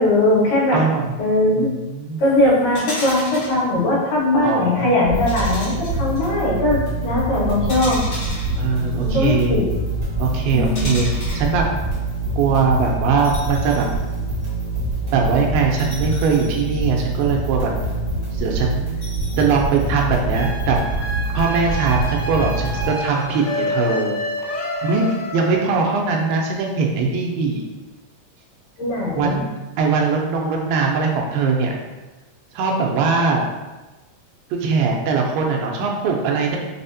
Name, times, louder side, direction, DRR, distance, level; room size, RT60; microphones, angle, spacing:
voice 1, 0.0-0.8 1.2-1.7 2.2-8.0 9.0-9.6 10.5-10.9 28.8-29.5, left 1 dB, 70° left, -8 dB, 2.9 m, -19 dB
voice 2, 0.7-1.1 1.6-2.2 4.4-4.9 8.6-9.5 10.2-11.6 12.4-13.9 15.1-17.7 18.3-18.9 19.4-20.8 21.3-24.2 24.5-25.1 25.3-27.6 29.2-29.5 29.8-31.8 32.5-33.5 34.5-36.6, right 4 dB, 85° right, 0 dB, 2.3 m, -21 dB
sound 1, 2.7-3.6 5.3-6.2 7.7-9.1 10.7-11.5 13.2-14.0 14.4-14.5 15.8-17.4 19.0-20.1, left 1 dB, 55° left, 1.0 m, -33 dB
sound 2, 5.0-22.9, right 2 dB, 70° right, 0.7 m, -25 dB
sound 3, 20.3-25.9, equal, 90° left, 2.4 m, -28 dB
5.9 x 2.1 x 2.6 m, 1.1 s
omnidirectional pair, 4.0 m